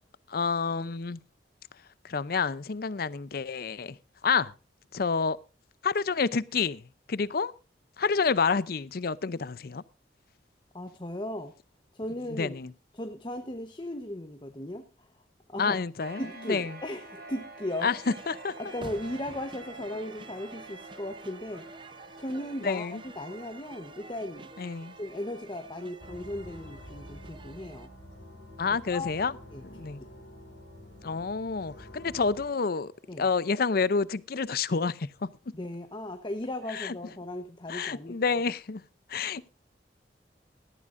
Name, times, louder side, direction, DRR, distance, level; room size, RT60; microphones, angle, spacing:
voice 1, 0.3-1.2 2.0-4.0 4.2-4.5 4.9-5.4 5.8-6.8 7.1-7.5 8.0-9.8 12.4-12.7 15.6-16.8 17.8-18.5 22.6-23.0 24.6-25.0 28.6-29.3 29.6-30.0 31.0-32.9 33.2-35.3 36.7-37.0 37.7-38.8 39.1-39.5, left 5 dB, 60° left, 0.6 m, -29 dB
voice 2, 10.7-11.5 11.9-12.6 12.9-14.8 15.5-15.8 16.2-17.9 18.6-24.5 24.9-27.9 28.7-29.1 29.5-29.6 33.1-33.3 35.5-38.2, left 1 dB, 25° left, 1.0 m, -37 dB
sound 1, 16.0-33.2, right 2 dB, 60° right, 2.0 m, -50 dB
sound 2, 17.7-27.9, right 3 dB, 30° right, 0.8 m, -50 dB
sound 3, 26.0-32.4, left 1 dB, 90° left, 3.3 m, -48 dB
18.5 x 13.0 x 2.6 m
head